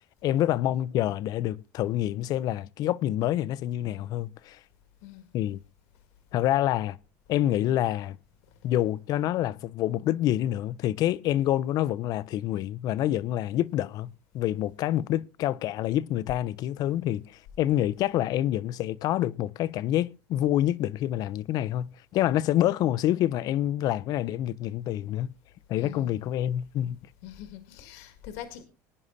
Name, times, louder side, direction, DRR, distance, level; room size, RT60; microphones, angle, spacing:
voice 1, 0.2-4.6 5.3-5.6 6.3-7.0 7.3-8.2 8.6-25.3 25.7-27.0, left 13 dB, 55° left, 0.5 m, -27 dB
voice 2, 25.8-26.3 27.2-28.6, left 10 dB, 85° left, 1.9 m, -43 dB
21.0 x 9.6 x 2.6 m
supercardioid pair, 110°, 8 cm